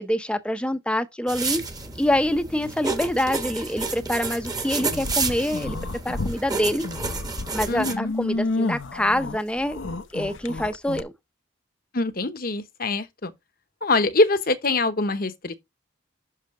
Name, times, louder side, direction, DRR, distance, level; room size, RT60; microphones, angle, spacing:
voice 1, 0.0-1.6 2.0-5.8 6.0-6.8 7.5-9.8 10.1-11.1, left 1 dB, 5° left, 0.6 m, -25 dB
sound 1, 1.3-7.9, right 4 dB, 20° right, 1.1 m, -30 dB
sound 2, 4.8-6.4 6.8-11.0, left 2 dB, 70° left, 0.8 m, -30 dB
voice 2, 7.7-8.1 11.9-13.3 13.8-15.5, left 2 dB, 45° left, 0.9 m, -24 dB
7.5 x 6.3 x 3.7 m
head